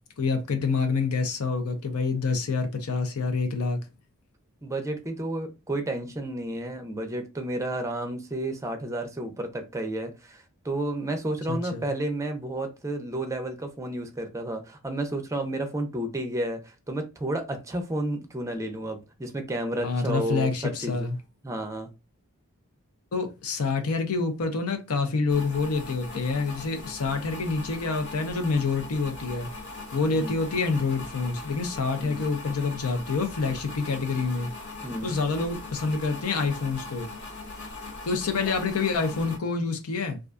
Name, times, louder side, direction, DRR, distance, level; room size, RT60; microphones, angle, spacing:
voice 1, 0.2-3.8 11.5-11.8 19.8-21.2 23.1-29.5 29.9-34.5 35.0-37.1 38.1-40.2, left 4 dB, 80° left, 0.6 m, -27 dB
voice 2, 4.6-21.1 21.4-21.9 30.1-30.4 32.0-32.3 34.8-35.1, right 1 dB, 15° right, 0.4 m, -31 dB
sound 1, 25.3-39.4, left 3 dB, 55° left, 0.8 m, -40 dB
2.4 x 2.2 x 2.4 m
head